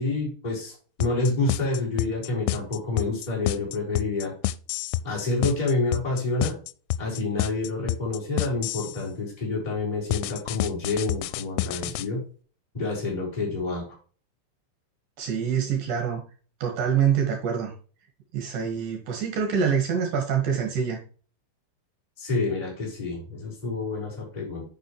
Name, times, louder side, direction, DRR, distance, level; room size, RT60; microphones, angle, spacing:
voice 1, 0.0-4.3 5.0-6.5 7.0-12.2 12.7-14.0 22.2-24.6, left 3 dB, 10° left, -4 dB, 3.8 m, -28 dB
sound 1, 1.0-9.0 10.1-12.1, left 14 dB, 90° left, 3.1 m, -29 dB
voice 2, 15.2-16.2 16.6-17.7 18.3-21.0, right 7 dB, 60° right, 3 dB, 2.9 m, -25 dB
9.4 x 6.3 x 3.1 m, 0.39 s
omnidirectional pair, 5.6 m